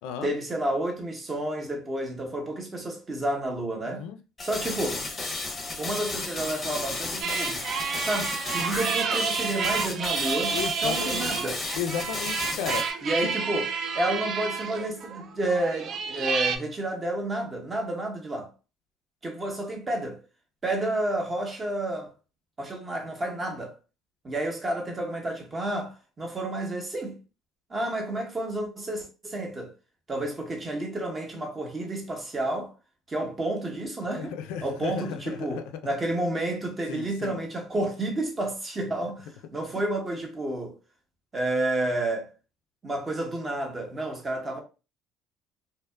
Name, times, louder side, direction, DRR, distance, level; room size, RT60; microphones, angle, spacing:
voice 1, 0.2-4.1 4.4-5.1 5.8-7.6 8.1-10.5 10.8-11.6 13.0-13.7 13.9-18.5 19.2-20.2 20.6-22.1 22.6-23.8 24.2-27.2 27.7-29.7 30.1-32.7 33.1-34.3 34.6-40.8 41.3-42.3 42.8-44.6, right 1 dB, 25° right, 0.9 m, -30 dB
voice 2, 3.9-4.2 10.5-11.3 11.8-12.8 34.2-35.8 36.9-37.4, left 8 dB, 80° left, 0.3 m, -34 dB
sound 1, 4.4-12.9, left 3 dB, 25° left, 0.6 m, -33 dB
sound 2, 7.2-16.6, right 6 dB, 50° right, 0.4 m, -30 dB
2.8 x 2.2 x 2.2 m
supercardioid pair, 95°, 0 cm